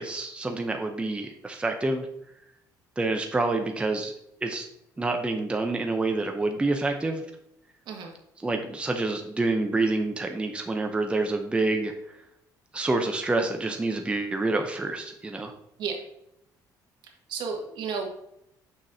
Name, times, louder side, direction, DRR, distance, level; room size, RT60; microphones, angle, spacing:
voice 1, 0.0-2.1 3.0-4.1 4.4-4.7 5.0-7.2 8.4-11.9 12.7-15.5, right 2 dB, 15° right, 4 dB, 0.6 m, -27 dB
voice 2, 17.3-18.1, right 5 dB, 70° right, 2 dB, 1.5 m, -32 dB
6.2 x 6.0 x 2.7 m, 0.80 s
cardioid pair, 105°, 8 cm